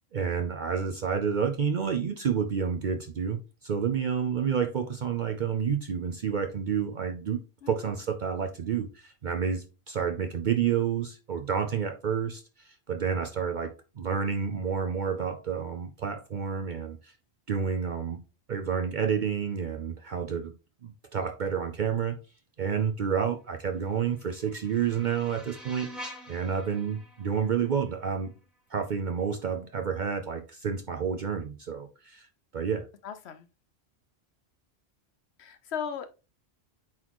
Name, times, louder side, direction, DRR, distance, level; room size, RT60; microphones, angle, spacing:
voice 1, 0.1-7.4 7.7-17.1 17.5-18.2 18.5-20.5 20.8-22.2 22.6-28.3 28.7-32.3 32.5-32.9, right 7 dB, 50° right, 0.7 m, -29 dB
voice 2, 7.6-8.0 33.0-33.5 35.4-36.1, left 7 dB, 75° left, 0.9 m, -37 dB
sound 1, 23.7-28.7, equal, ahead, 1.5 m, -47 dB
8.5 x 4.1 x 3.0 m
omnidirectional pair, 1.1 m